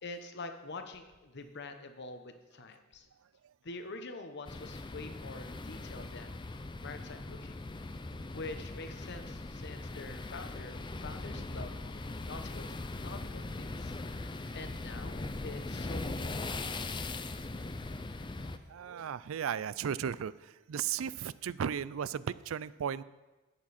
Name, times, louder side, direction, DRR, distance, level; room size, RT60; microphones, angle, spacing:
voice 1, 0.0-3.1 3.6-7.6 8.3-12.7 13.0-13.9 14.5-17.0, left 3 dB, 55° left, 7 dB, 1.0 m, -46 dB
sound 1, 4.4-18.6, left 2 dB, 25° left, 0.5 m, -40 dB
voice 2, 18.7-23.0, right 8 dB, 80° right, 18 dB, 0.4 m, -35 dB
13.5 x 8.7 x 4.3 m, 1.1 s
head